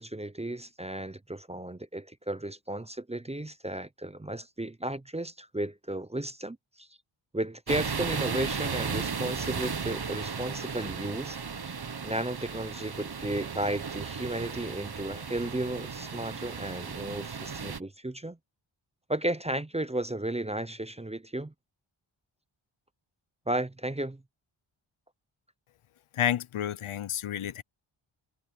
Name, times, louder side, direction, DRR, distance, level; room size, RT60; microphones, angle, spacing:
voice 1, 0.0-6.9 7.3-11.4 11.7-18.4 19.1-21.5 23.5-24.2, right 1 dB, 15° right, 0.6 m, -34 dB
sound 1, 7.7-17.8, right 5 dB, 50° right, 1.3 m, -35 dB
voice 2, 26.1-27.6, left 11 dB, 80° left, 0.7 m, -30 dB
wide cardioid pair, 90°, 49 cm